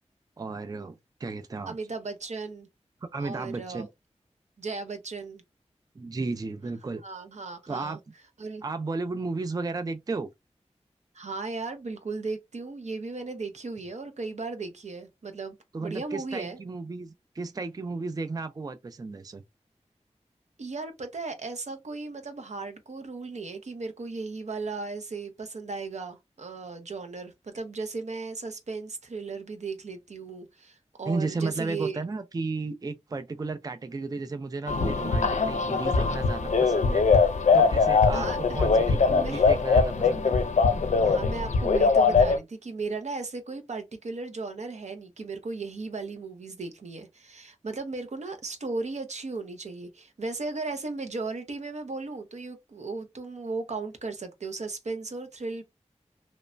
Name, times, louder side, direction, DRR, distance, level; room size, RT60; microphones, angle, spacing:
voice 1, 0.4-1.7 3.0-3.9 6.0-7.0 7.7-8.0 8.6-10.3 15.7-19.4 31.0-37.1 37.5-40.4, right 3 dB, 30° right, 0.4 m, -34 dB
voice 2, 1.7-2.7 3.2-3.9 4.6-5.4 7.0-8.0 8.4-8.6 11.1-16.6 20.6-32.0 38.1-38.4 39.1-39.4 41.0-55.6, right 3 dB, 75° right, 0.6 m, -36 dB
sound 1, 34.7-42.4, left 4 dB, 80° left, 0.4 m, -22 dB
3.0 x 2.1 x 2.5 m
wide cardioid pair, 50°, 12 cm